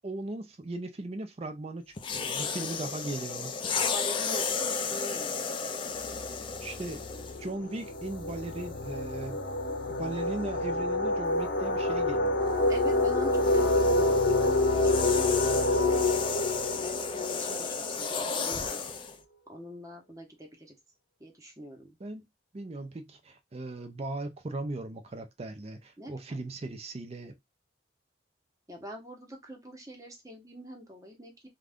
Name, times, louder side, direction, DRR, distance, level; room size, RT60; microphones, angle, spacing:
voice 1, 0.0-1.8 2.1-3.5 6.6-9.4 9.9-12.5 22.0-22.2 22.5-27.3, right 2 dB, 35° right, 0.5 m, -38 dB
sound 1, 2.0-7.5 8.3-8.5 12.5-19.2, left 5 dB, 30° left, 0.3 m, -34 dB
voice 2, 3.9-5.5 12.7-15.5 16.8-18.8 19.5-20.8 21.2-22.0 26.0-26.5 28.7-31.5, equal, 20° right, 0.8 m, -44 dB
sound 2, 6.1-6.3 6.6-18.2, left 2 dB, 75° left, 0.8 m, -27 dB
2.4 x 2.3 x 3.4 m
head